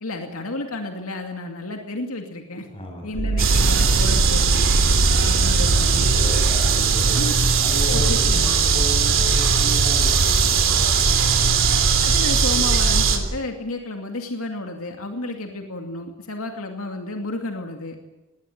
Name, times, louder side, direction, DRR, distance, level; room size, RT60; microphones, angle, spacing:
voice 1, 0.0-2.7 3.0-4.7 5.3-6.1 7.1-7.3 7.8-8.4 12.0-18.0, left 2 dB, 75° left, 3 dB, 2.5 m, -31 dB
voice 2, 2.6-3.4 5.1-5.4 5.7-11.9, right 1 dB, 25° left, 2 dB, 7.5 m, -35 dB
sound 1, 3.1-8.0, right 3 dB, 80° right, 0.7 m, -24 dB
sound 2, 3.4-13.2, right 5 dB, 65° right, 3.3 m, -19 dB
20.0 x 19.0 x 9.1 m, 1.1 s
head